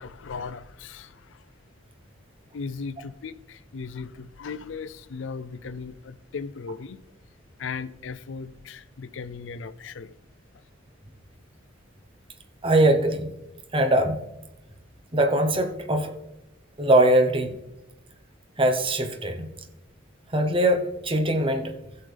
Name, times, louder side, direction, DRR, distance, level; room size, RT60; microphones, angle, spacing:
voice 1, 0.0-1.4 2.5-7.0 7.6-10.1, left 5 dB, 75° left, 0.5 m, -37 dB
voice 2, 12.6-13.3 13.7-14.3 15.1-16.1 16.8-17.5 18.6-19.5 20.3-21.7, right 1 dB, 30° right, 1.0 m, -21 dB
15.5 x 6.7 x 3.4 m
head